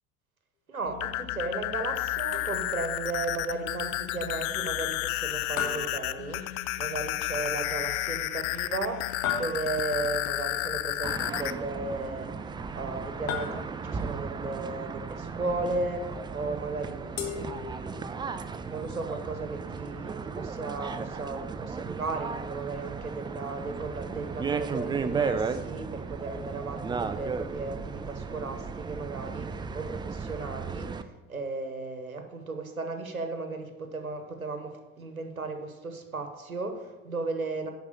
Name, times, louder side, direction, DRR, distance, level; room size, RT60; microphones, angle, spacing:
voice 1, 0.7-18.1 18.4-37.7, right 3 dB, 90° right, 6 dB, 1.0 m, -35 dB
sound 1, 0.9-11.5, left 16 dB, 55° left, 0.5 m, -32 dB
sound 2, 2.3-2.9 5.6-6.8 9.2-10.1 13.3-14.1 17.2-18.2, left 7 dB, 75° left, 1.4 m, -36 dB
sound 3, 11.0-31.0, right 5 dB, 10° right, 0.4 m, -35 dB
11.0 x 4.5 x 7.0 m, 1.1 s
figure-of-eight pair, 65°, 41 cm